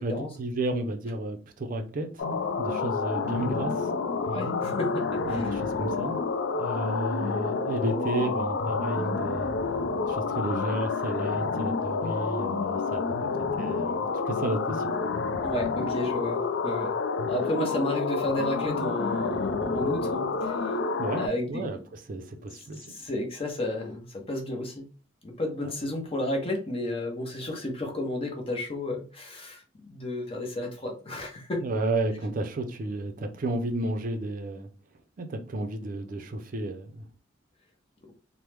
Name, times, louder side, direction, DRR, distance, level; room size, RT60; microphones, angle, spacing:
voice 1, 0.0-2.3 2.6-3.9 5.3-6.2 6.5-9.5 10.1-14.9 21.0-22.9 25.6-25.7 31.6-34.7 35.2-37.1, right 2 dB, 45° right, 0.4 m, -32 dB
Random Random, 2.2-21.3, left 4 dB, 75° left, 0.4 m, -29 dB
voice 2, 4.2-5.5 15.4-16.9 17.3-20.8 21.2-21.6 22.9-24.9 25.2-29.6 29.9-31.6, left 1 dB, 30° left, 0.7 m, -32 dB
3.0 x 2.0 x 3.3 m
head